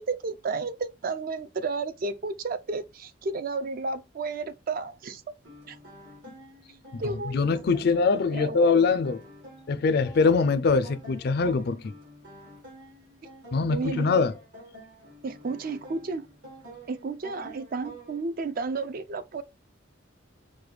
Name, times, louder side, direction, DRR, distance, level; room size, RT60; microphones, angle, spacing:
voice 1, 0.0-5.2 5.7-5.8 7.0-7.4 8.3-8.7 13.7-14.1 15.2-16.2 16.9-19.4, right 3 dB, 45° right, 0.4 m, -32 dB
sound 1, 5.4-18.2, right 1 dB, 70° right, 1.8 m, -48 dB
voice 2, 7.3-9.2 9.7-11.9 13.5-14.3, left 4 dB, 55° left, 0.4 m, -23 dB
4.8 x 2.2 x 3.1 m
head